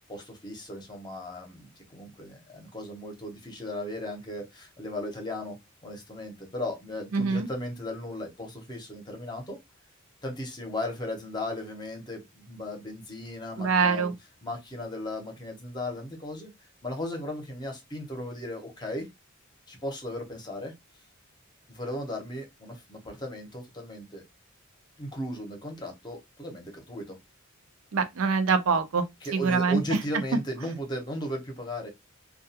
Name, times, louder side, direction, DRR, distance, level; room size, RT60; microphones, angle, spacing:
voice 1, 0.1-5.6 5.8-9.6 10.2-14.1 14.4-16.5 16.8-19.1 19.7-20.7 21.7-24.2 25.0-27.1 29.2-31.9, left 1 dB, 20° left, 0.7 m, -36 dB
voice 2, 7.1-7.5 13.6-14.1 27.9-29.1 29.3-30.0, right 5 dB, 80° right, 0.5 m, -24 dB
2.3 x 2.3 x 2.7 m
head